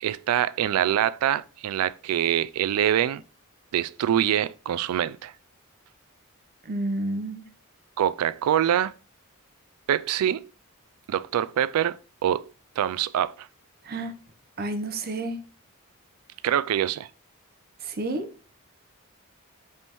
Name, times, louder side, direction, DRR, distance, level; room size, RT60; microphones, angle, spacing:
voice 1, 0.0-3.2 3.7-5.3 8.0-8.9 9.9-10.5 11.1-12.0 12.2-13.5 16.4-17.1, right 10 dB, 80° right, 0.3 m, -25 dB
voice 2, 6.7-7.4 13.9-14.1 14.6-15.4 17.8-18.3, right 2 dB, 45° right, 0.6 m, -30 dB
5.2 x 3.5 x 2.9 m
head